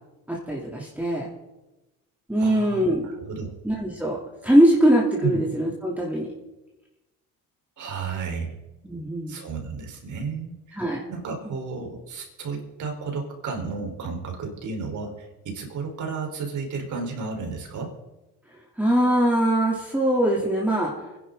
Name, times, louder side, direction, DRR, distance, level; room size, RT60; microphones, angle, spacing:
voice 1, 0.3-1.3 2.3-3.1 3.6-4.2 4.4-6.3 8.8-9.4 10.7-11.0 11.4-11.5 18.8-20.9, right 1 dB, 5° right, -4 dB, 2.9 m, -22 dB
voice 2, 2.4-3.5 5.2-5.4 7.8-8.5 9.3-10.8 11.1-17.9, right 4 dB, 55° right, 2 dB, 4.1 m, -32 dB
24.0 x 11.0 x 3.8 m, 1.0 s
supercardioid pair, 90°, 35 cm